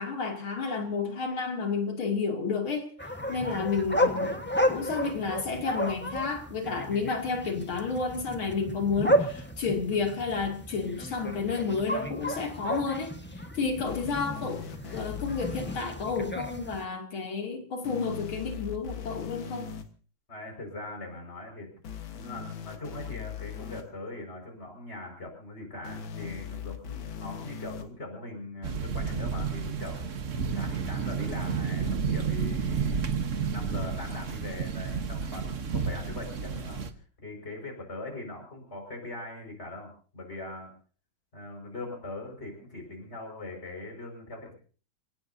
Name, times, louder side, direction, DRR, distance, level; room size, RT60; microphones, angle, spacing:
voice 1, 0.0-2.9 3.3-4.4 4.7-14.6 14.9-19.7, left 4 dB, 85° left, 3.5 m, -31 dB
sound 1, 3.0-16.8, equal, 5° left, 1.1 m, -32 dB
sound 2, 13.9-15.8 17.8-19.8 21.8-23.8 25.8-27.8 29.8-29.9, left 8 dB, 70° left, 2.2 m, -39 dB
voice 2, 20.3-21.7 22.1-30.0 30.5-33.0 33.5-36.8 37.2-40.7 41.3-44.5, left 2 dB, 30° left, 6.0 m, -41 dB
sound 3, 28.6-36.9, right 6 dB, 45° right, 1.3 m, -31 dB
29.0 x 17.5 x 2.8 m
omnidirectional pair, 2.2 m